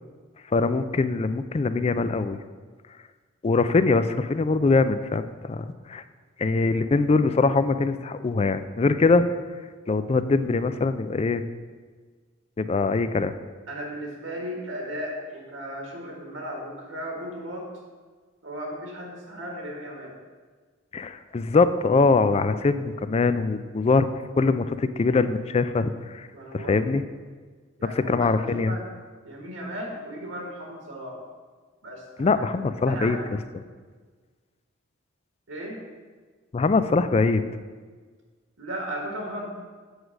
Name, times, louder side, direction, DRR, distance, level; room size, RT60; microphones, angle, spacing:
voice 1, 0.5-2.4 3.4-6.0 6.4-9.3 9.9-11.4 12.6-13.3 20.9-24.1 24.4-26.3 26.5-27.0 27.8-28.7 32.2-33.2 36.5-37.4, left 3 dB, 30° left, 12 dB, 0.3 m, -22 dB
voice 2, 13.7-17.7 18.4-20.1 26.3-26.9 27.8-28.9 29.2-31.2 31.8-33.2 35.5-35.8 38.6-39.5, equal, 80° right, 0 dB, 1.7 m, -36 dB
8.1 x 4.7 x 6.4 m, 1.5 s
head